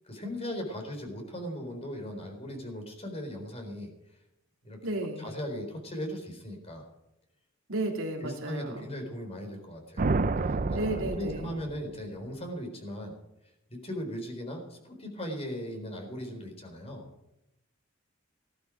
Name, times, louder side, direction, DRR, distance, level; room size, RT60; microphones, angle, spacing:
voice 1, 0.0-3.9 4.6-4.8 5.2-6.9 8.2-10.1 10.4-13.1 13.7-17.1, equal, 30° left, 3 dB, 4.1 m, -38 dB
voice 2, 4.8-5.3 7.7-8.9 10.7-11.5, right 1 dB, 85° right, 1 dB, 3.2 m, -33 dB
sound 1, 10.0-12.1, right 3 dB, 40° right, 0.5 m, -29 dB
16.5 x 12.0 x 4.9 m, 0.88 s
head